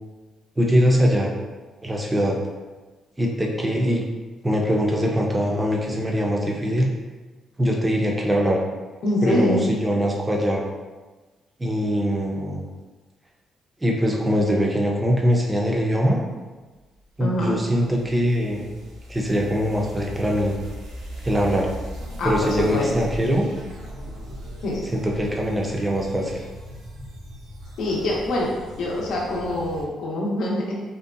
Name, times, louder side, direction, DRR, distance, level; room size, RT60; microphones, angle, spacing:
voice 1, 0.6-1.3 1.8-2.4 3.2-4.0 4.4-6.9 7.6-8.6 9.2-10.6 11.6-12.6 13.8-16.2 17.2-18.7 19.1-20.6 21.2-21.7 22.2-23.4 24.9-26.4, equal, 15° right, -1 dB, 0.5 m, -22 dB
voice 2, 9.0-9.7 17.2-17.6 22.2-22.9 24.6-24.8 27.8-28.5 28.8-30.8, left 1 dB, 70° left, -3 dB, 0.6 m, -24 dB
sound 1, 17.0-29.8, equal, 90° right, 0.5 m, -38 dB
2.7 x 2.2 x 2.4 m, 1.3 s
cardioid pair, 90°, 0 cm